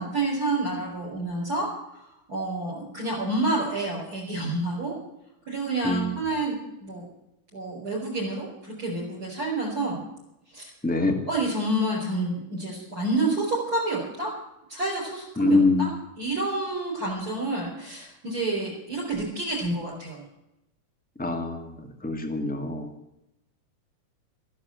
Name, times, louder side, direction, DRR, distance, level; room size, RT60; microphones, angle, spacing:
voice 1, 0.0-4.9 5.5-7.1 7.5-10.0 10.5-14.3 14.7-20.2, right 2 dB, 30° right, -5 dB, 5.7 m, -29 dB
voice 2, 10.8-11.1 15.4-15.8 21.2-21.6 22.0-22.9, left 3 dB, 5° left, 5 dB, 1.2 m, -24 dB
15.0 x 11.0 x 7.6 m, 0.88 s
omnidirectional pair, 3.5 m